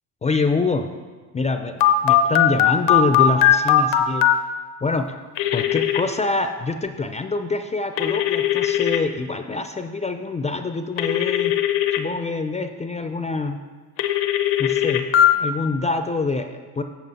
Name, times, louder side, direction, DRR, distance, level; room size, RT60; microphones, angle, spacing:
voice 1, 0.2-0.9 1.3-4.3 4.8-5.2 5.5-11.5 12.0-13.6 14.6-15.1 15.3-16.8, left 3 dB, 20° left, 7 dB, 0.3 m, -25 dB
Telephone, 1.8-4.4 5.4-6.0 8.0-9.0 11.0-12.0 14.0-15.3, left 11 dB, 85° left, 0.7 m, -18 dB
7.7 x 6.8 x 4.0 m, 1.4 s
supercardioid pair, 85°, 38 cm